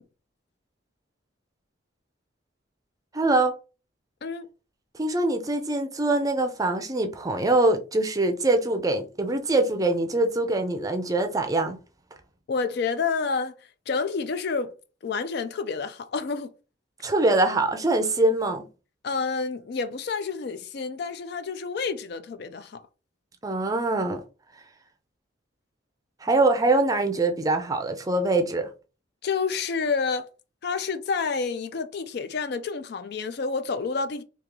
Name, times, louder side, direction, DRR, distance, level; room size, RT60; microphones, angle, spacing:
voice 1, 3.1-3.5 4.9-11.8 17.0-18.7 23.4-24.2 26.2-28.7, right 2 dB, 20° right, 0.5 m, -23 dB
voice 2, 12.5-13.6 13.9-14.7 15.0-16.5 19.0-22.8 29.2-30.3 30.6-34.2, left 5 dB, 55° left, 0.4 m, -29 dB
3.1 x 2.8 x 3.7 m
head